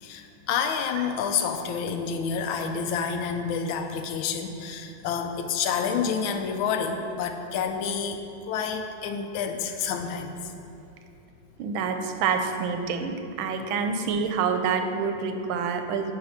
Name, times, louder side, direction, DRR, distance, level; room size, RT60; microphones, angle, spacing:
voice 1, 0.0-10.5, left 6 dB, 90° left, 6 dB, 1.4 m, -29 dB
voice 2, 11.6-16.1, right 5 dB, 90° right, 6 dB, 1.4 m, -27 dB
9.4 x 3.2 x 5.8 m, 2.7 s
omnidirectional pair, 2.1 m